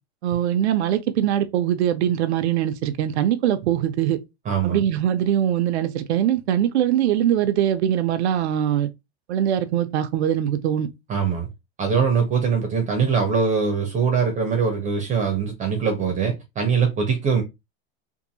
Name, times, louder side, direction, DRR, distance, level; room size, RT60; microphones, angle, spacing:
voice 1, 0.2-4.2 4.6-8.9 9.3-10.9, right 10 dB, 80° right, 0.5 m, -22 dB
voice 2, 4.4-4.8 11.1-11.5 11.8-17.4, right 6 dB, 25° right, 0.7 m, -22 dB
2.6 x 2.6 x 2.6 m
hypercardioid pair, 120°, 33 cm